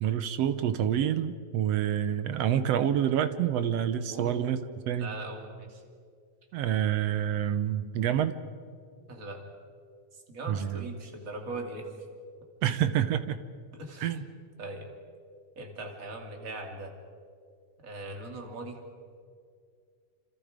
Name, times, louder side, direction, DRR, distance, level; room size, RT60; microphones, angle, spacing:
voice 1, 0.0-4.6 4.9-5.1 6.5-8.4 10.5-10.8 12.6-13.4 14.0-14.2, right 10 dB, 70° right, 11 dB, 1.8 m, -27 dB
voice 2, 5.0-5.8 9.1-9.4 10.1-11.9 13.7-14.2 14.6-14.9 15.6-16.9 17.8-18.8, right 2 dB, 30° right, 2 dB, 2.8 m, -40 dB
27.5 x 27.0 x 5.1 m, 2.1 s
omnidirectional pair, 3.3 m